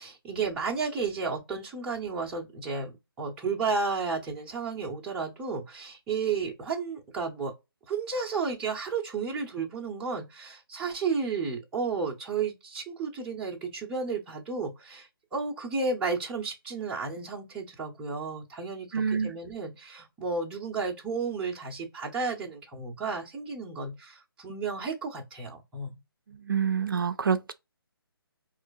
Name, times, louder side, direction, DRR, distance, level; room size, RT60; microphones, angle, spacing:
voice 1, 0.0-7.5 7.9-26.0, right 4 dB, 10° right, 0.6 m, -32 dB
voice 2, 18.9-19.3 26.4-27.5, right 6 dB, 60° right, 0.4 m, -27 dB
4.2 x 2.4 x 2.4 m
figure-of-eight pair, 145°, 13 cm